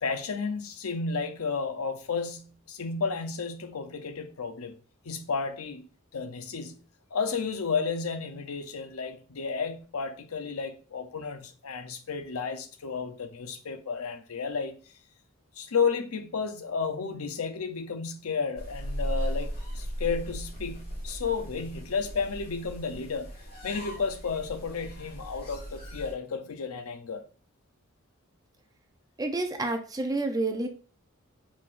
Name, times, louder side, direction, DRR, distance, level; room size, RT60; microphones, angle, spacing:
voice 1, 0.0-4.8 5.0-6.8 7.1-14.8 15.6-23.3 23.6-27.2, left 5 dB, 75° left, 0.6 m, -32 dB
sound 1, 18.6-26.1, equal, 45° left, 1.5 m, -37 dB
voice 2, 29.2-30.7, right 2 dB, 15° right, 0.6 m, -29 dB
4.7 x 3.7 x 2.5 m
head